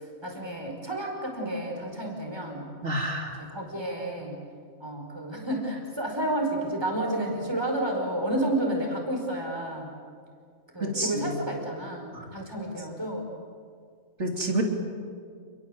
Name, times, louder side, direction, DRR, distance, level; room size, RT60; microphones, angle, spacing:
voice 1, 0.0-2.7 3.5-4.4 4.8-9.9 10.7-13.3, right 1 dB, 20° right, 1 dB, 5.1 m, -31 dB
voice 2, 2.8-3.4 10.8-11.4 12.1-12.3 14.2-14.6, right 1 dB, 60° right, 2 dB, 3.6 m, -29 dB
28.5 x 22.0 x 7.9 m, 2.2 s
omnidirectional pair, 1.4 m